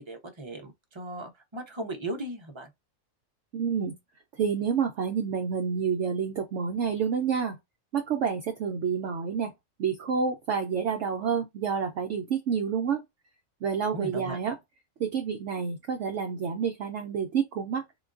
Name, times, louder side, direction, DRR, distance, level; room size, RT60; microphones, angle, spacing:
voice 1, 0.0-2.7 13.9-14.4, right 1 dB, 30° right, 0.6 m, -37 dB
voice 2, 3.5-4.0 4.3-7.6 7.9-9.5 9.8-13.0 13.6-14.6 15.0-17.8, right 6 dB, 65° right, 0.8 m, -28 dB
3.7 x 2.2 x 2.4 m
omnidirectional pair, 1.5 m